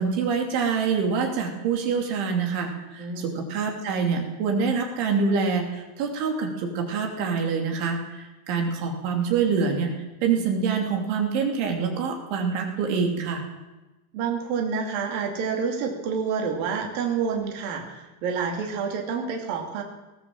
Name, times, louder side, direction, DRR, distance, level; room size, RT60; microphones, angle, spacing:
voice 1, 0.0-13.4, right 5 dB, 85° right, 3 dB, 5.3 m, -26 dB
voice 2, 3.0-3.4 14.1-19.8, right 6 dB, 55° right, 2 dB, 4.1 m, -28 dB
19.0 x 19.0 x 7.7 m, 1.1 s
omnidirectional pair, 5.3 m